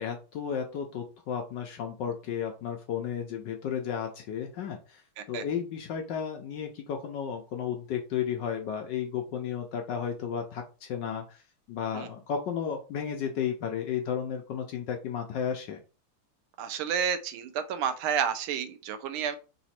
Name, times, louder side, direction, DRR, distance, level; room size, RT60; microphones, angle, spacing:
voice 1, 0.0-5.0 5.3-11.4 11.7-15.8, left 8 dB, 70° left, 1.1 m, -33 dB
voice 2, 16.6-19.4, right 8 dB, 80° right, 1.4 m, -30 dB
4.0 x 3.0 x 4.2 m
omnidirectional pair, 2.4 m